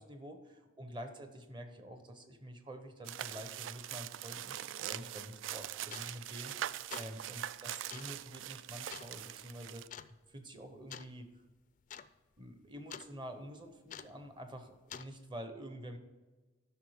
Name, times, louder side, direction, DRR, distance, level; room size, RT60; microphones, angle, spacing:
voice 1, 0.0-4.6 4.9-10.0 10.3-11.3 12.4-16.0, equal, 25° right, 7 dB, 0.9 m, -48 dB
sound 1, 3.0-9.9, right 11 dB, 75° right, 0.3 m, -42 dB
sound 2, 5.0-5.1 5.9-6.3 6.7-7.2 7.9-8.2 8.9-9.1 9.9-10.1 10.9-11.1 11.4-11.5 11.8-12.1 12.4-13.1 13.9-14.2 14.9-15.1, left 8 dB, 40° left, 0.3 m, -48 dB
10.5 x 6.3 x 5.0 m, 1.2 s
head